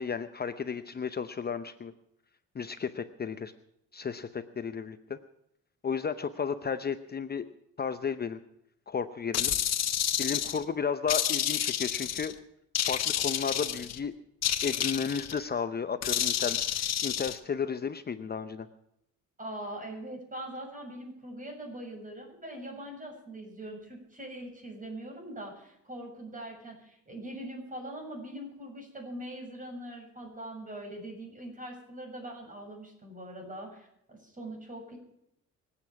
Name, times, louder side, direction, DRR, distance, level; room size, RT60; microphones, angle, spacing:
voice 1, 0.0-1.9 2.5-3.5 3.9-5.2 5.8-7.5 7.8-8.4 8.9-9.6 10.2-12.3 12.9-14.1 14.6-18.7, left 6 dB, 30° left, 10 dB, 0.8 m, -33 dB
sound 1, 9.3-10.6 11.1-12.3 12.8-14.0 14.4-15.4 16.0-17.4, left 10 dB, 60° left, 1.1 m, -29 dB
voice 2, 19.4-35.0, right 1 dB, 25° right, 2 dB, 7.1 m, -42 dB
24.5 x 8.6 x 6.0 m, 0.78 s
cardioid pair, 90°, 30 cm